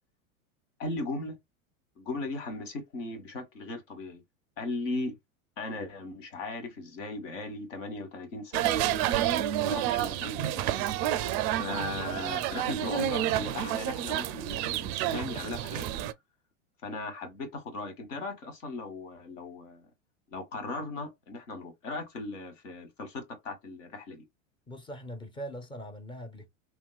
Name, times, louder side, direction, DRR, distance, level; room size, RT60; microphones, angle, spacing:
voice 1, 0.8-1.4 2.0-4.2 4.6-5.2 5.6-9.2 9.6-10.6 11.6-15.9 16.8-19.9 20.3-24.2, left 2 dB, 65° left, 1.5 m, -38 dB
sound 1, 8.5-16.1, right 12 dB, 40° right, 0.4 m, -29 dB
voice 2, 24.7-26.5, equal, 10° left, 0.5 m, -41 dB
3.0 x 2.8 x 2.3 m
hypercardioid pair, 95°, 41 cm